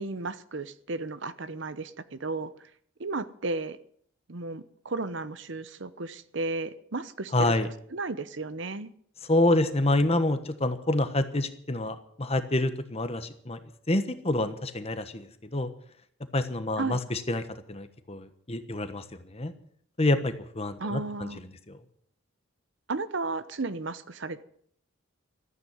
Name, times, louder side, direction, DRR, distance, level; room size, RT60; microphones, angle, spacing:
voice 1, 0.0-2.5 3.0-3.8 4.3-7.5 7.9-8.9 16.8-17.0 20.8-21.4 22.9-24.4, right 3 dB, 60° right, 14 dB, 0.9 m, -34 dB
voice 2, 7.3-7.7 9.2-13.6 13.9-15.7 16.3-17.4 17.7-19.0 19.3-19.5 20.0-21.3 21.7-21.8, left 2 dB, 30° left, 10 dB, 1.2 m, -27 dB
14.0 x 9.4 x 9.4 m, 0.63 s
head